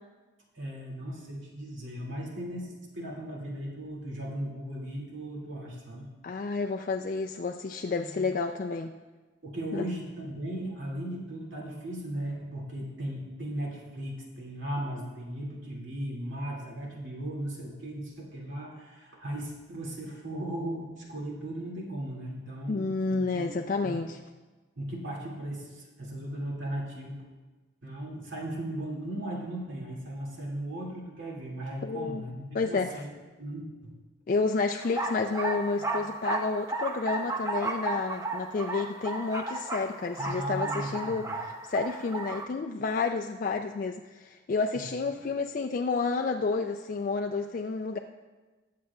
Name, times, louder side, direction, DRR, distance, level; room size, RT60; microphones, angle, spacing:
voice 1, 0.5-6.1 9.4-23.5 23.8-23.9 24.8-27.2 27.8-33.1 33.4-33.9 40.2-41.3 44.7-44.9, right 1 dB, 70° right, -3 dB, 2.3 m, -37 dB
voice 2, 6.2-9.0 9.7-9.8 22.7-24.2 31.8-32.2 32.5-32.9 34.3-48.0, left 4 dB, 40° left, 3 dB, 0.3 m, -30 dB
sound 1, 34.8-42.5, right 2 dB, 15° right, 0.6 m, -34 dB
20.5 x 7.6 x 2.3 m, 1.3 s
head